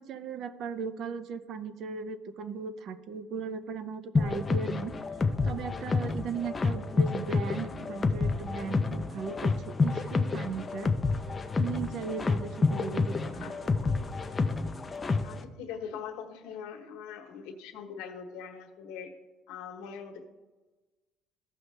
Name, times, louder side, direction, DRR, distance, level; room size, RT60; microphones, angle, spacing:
voice 1, 0.0-4.9 5.4-11.0 11.6-13.5 13.8-13.9, right 5 dB, 40° right, 12 dB, 0.5 m, -37 dB
sound 1, 4.1-15.4, left 4 dB, 15° left, 0.4 m, -29 dB
voice 2, 12.7-13.9 15.2-19.1 19.5-20.2, left 7 dB, 85° left, 4 dB, 1.2 m, -42 dB
15.0 x 6.0 x 3.3 m, 1.2 s
cardioid pair, 175°, 0 cm